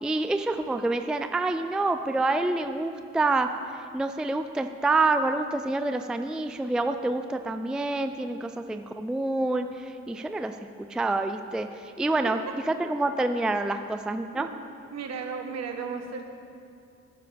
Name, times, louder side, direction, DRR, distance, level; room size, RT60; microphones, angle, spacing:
voice 1, 0.0-3.5 3.9-10.6 10.9-12.4 12.7-14.5, right 2 dB, 5° right, 8 dB, 0.4 m, -27 dB
voice 2, 14.9-16.3, right 5 dB, 60° right, 4 dB, 1.3 m, -34 dB
15.0 x 9.8 x 3.5 m, 2.4 s
cardioid pair, 90°, 30 cm